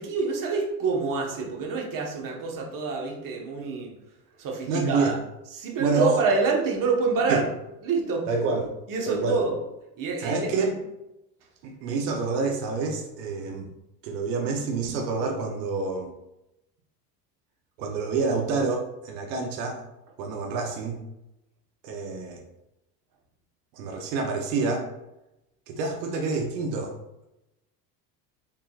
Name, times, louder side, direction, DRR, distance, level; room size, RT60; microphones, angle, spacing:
voice 1, 0.0-3.9 4.4-5.2 5.5-7.5 7.8-8.3 8.9-9.6 10.0-10.5, right 4 dB, 40° right, 0 dB, 1.2 m, -27 dB
voice 2, 4.7-5.1 5.8-6.2 7.3-7.4 8.3-8.7 9.1-9.4 10.2-10.8 11.6-13.7 14.0-16.1 17.8-19.8 20.2-21.0 21.8-22.4 23.7-24.9 25.7-27.0, right 4 dB, 80° right, 2 dB, 0.8 m, -27 dB
4.5 x 3.7 x 2.4 m, 0.91 s
supercardioid pair, 90°, 48 cm